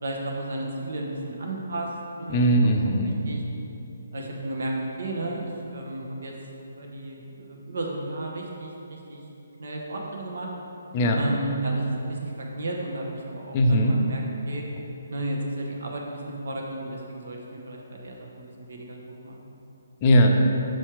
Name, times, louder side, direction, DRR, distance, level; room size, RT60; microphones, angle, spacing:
voice 1, 0.0-1.9 2.2-2.7 3.3-3.4 4.1-6.3 6.7-9.2 9.6-10.5 11.1-14.6 15.1-19.0 19.2-19.6, right 2 dB, 60° right, -1 dB, 1.1 m, -33 dB
voice 2, 2.3-3.1 10.9-11.2 13.5-14.0 20.0-20.3, equal, 30° left, 2 dB, 0.6 m, -19 dB
6.2 x 4.3 x 4.8 m, 3.0 s
figure-of-eight pair, 140°, 0 cm